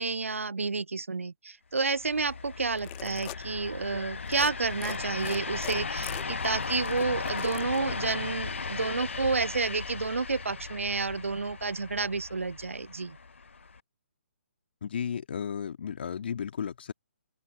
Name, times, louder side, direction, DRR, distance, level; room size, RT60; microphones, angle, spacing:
voice 1, 0.0-13.2, right 4 dB, 80° right, 0.4 m, -30 dB
sound 1, 1.9-13.8, left 4 dB, 70° left, 1.5 m, -37 dB
sound 2, 2.6-3.4 4.2-4.5 4.8-7.8, left 30 dB, 25° left, 1.2 m, -43 dB
voice 2, 14.8-16.9, left 7 dB, 55° left, 2.6 m, -34 dB
figure-of-eight pair, 135°, 7 cm